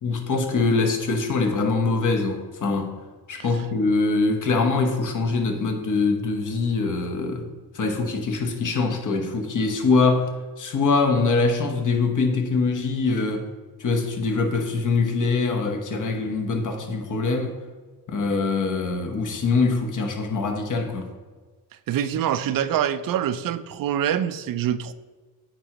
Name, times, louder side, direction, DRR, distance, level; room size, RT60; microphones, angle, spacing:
voice 1, 0.0-2.9 3.3-7.5 7.7-10.3 10.6-13.5 13.8-17.5 18.1-21.1, left 4 dB, 50° left, 3 dB, 1.1 m, -23 dB
voice 2, 21.9-24.9, right 10 dB, 60° right, 13 dB, 0.5 m, -25 dB
8.9 x 3.8 x 2.9 m, 1.4 s
cardioid pair, 75°, 38 cm